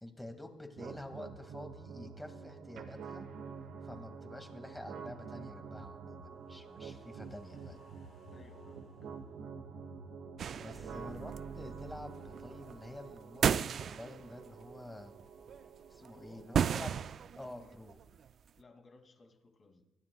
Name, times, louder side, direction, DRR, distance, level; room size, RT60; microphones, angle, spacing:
voice 1, 0.0-3.3 3.8-7.8 10.5-15.1 15.9-16.9 17.4-18.0, left 1 dB, 10° left, 5 dB, 2.1 m, -48 dB
sound 1, 0.8-16.8, right 5 dB, 75° right, 1.2 m, -48 dB
sound 2, 6.4-12.8 13.2-13.3, left 6 dB, 70° left, 4.9 m, -62 dB
voice 2, 8.3-9.1 10.7-11.4 16.0-16.5 18.6-19.9, left 3 dB, 40° left, 4 dB, 2.6 m, -60 dB
sound 3, 10.4-14.5 14.9-15.6 16.0-16.1 16.4-18.3, right 8 dB, 60° right, 0.3 m, -35 dB
25.0 x 12.0 x 2.3 m, 0.99 s
cardioid pair, 90°, 0 cm